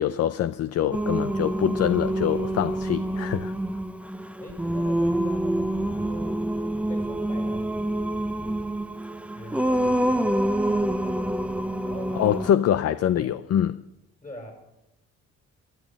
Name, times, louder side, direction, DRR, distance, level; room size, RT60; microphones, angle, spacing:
voice 1, 0.0-3.5 12.2-13.7, left 10 dB, 55° left, 0.6 m, -24 dB
Singing, 0.9-12.5, right 1 dB, 5° right, 0.5 m, -27 dB
voice 2, 4.4-6.4 6.9-7.9 9.3-11.2 11.9-12.4 13.1-13.3 14.2-14.5, left 1 dB, 25° left, 6.3 m, -42 dB
14.0 x 13.5 x 7.3 m
cardioid pair, 110°, 29 cm